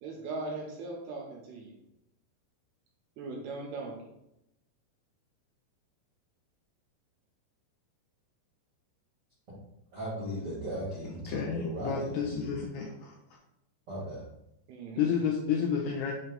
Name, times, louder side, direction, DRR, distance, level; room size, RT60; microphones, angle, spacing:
voice 1, 0.0-1.8 3.2-4.0 14.7-15.1, right 3 dB, 75° right, -1 dB, 2.6 m, -39 dB
voice 2, 9.9-12.5 13.9-14.2, right 1 dB, 50° right, -8 dB, 1.3 m, -37 dB
voice 3, 11.3-13.1 14.9-16.1, left 7 dB, 80° left, -1 dB, 2.4 m, -30 dB
7.1 x 2.8 x 5.2 m, 0.84 s
omnidirectional pair, 5.4 m